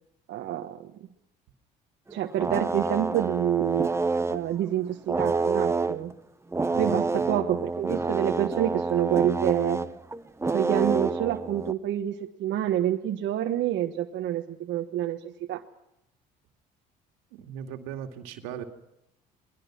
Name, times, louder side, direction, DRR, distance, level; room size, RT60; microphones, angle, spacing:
voice 1, 0.3-0.9 2.1-3.9 4.3-6.1 6.8-9.9 10.5-15.6, right 11 dB, 60° right, 4 dB, 1.4 m, -28 dB
sound 1, 2.1-4.4 5.1-6.1 6.5-11.7, right 4 dB, 15° right, 1.0 m, -28 dB
voice 2, 6.7-7.3 17.3-18.6, right 9 dB, 80° right, 5 dB, 2.3 m, -38 dB
29.0 x 20.5 x 6.1 m, 0.85 s
hypercardioid pair, 65°, 21 cm